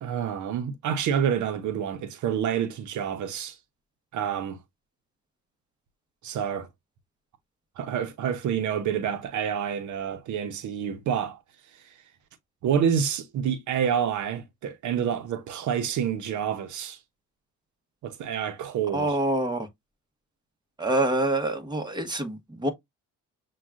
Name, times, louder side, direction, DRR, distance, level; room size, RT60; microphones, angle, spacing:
voice 1, 0.0-3.6 4.1-4.6 6.2-6.7 7.8-11.4 12.6-17.0 18.0-19.2, right 8 dB, 75° right, 0.8 m, -28 dB
voice 2, 18.9-19.7 20.8-22.7, right 1 dB, 15° right, 1.1 m, -26 dB
7.1 x 2.4 x 2.4 m
cardioid pair, 90°, 30 cm